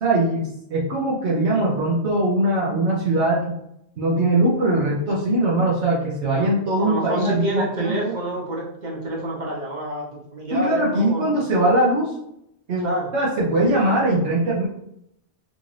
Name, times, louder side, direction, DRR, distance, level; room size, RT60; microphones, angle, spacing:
voice 1, 0.0-3.6 4.0-8.1 10.5-12.1 12.7-14.6, right 1 dB, 70° right, -5 dB, 1.1 m, -21 dB
voice 2, 6.3-11.3 12.8-13.1, right 1 dB, 40° right, -3 dB, 1.0 m, -28 dB
3.8 x 2.5 x 3.1 m, 0.78 s
omnidirectional pair, 1.2 m